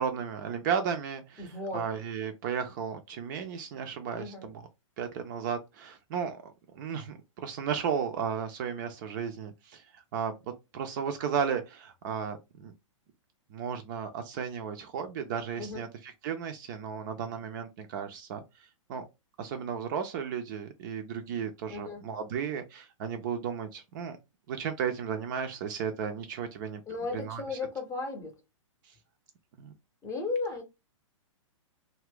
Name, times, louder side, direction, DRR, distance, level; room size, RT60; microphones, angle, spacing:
voice 1, 0.0-4.6 5.0-10.3 10.7-12.7 13.5-18.4 18.9-19.1 19.4-24.2 24.5-26.8 27.1-27.4 29.6-29.7, right 7 dB, 35° right, 0.4 m, -34 dB
voice 2, 1.4-1.8 4.1-4.5 15.6-15.8 21.7-22.0 26.9-28.4 30.0-30.6, left 3 dB, 15° left, 0.7 m, -35 dB
2.4 x 2.1 x 3.5 m
figure-of-eight pair, 110°, 17 cm